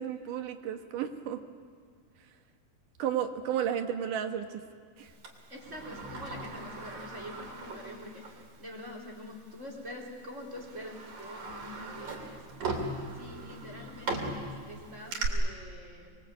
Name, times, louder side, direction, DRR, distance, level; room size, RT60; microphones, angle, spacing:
voice 1, 0.0-1.4 3.0-4.6 5.0-5.1, right 9 dB, 85° right, 6 dB, 2.9 m, -33 dB
Sliding door, 5.2-8.5 8.8-8.9 9.9-10.1 10.5-15.3, right 3 dB, 70° right, 4.3 m, -38 dB
voice 2, 5.5-8.2 8.6-12.6 13.2-16.2, left 1 dB, 20° right, 0 dB, 4.0 m, -45 dB
26.0 x 22.0 x 8.3 m, 2.1 s
omnidirectional pair, 3.6 m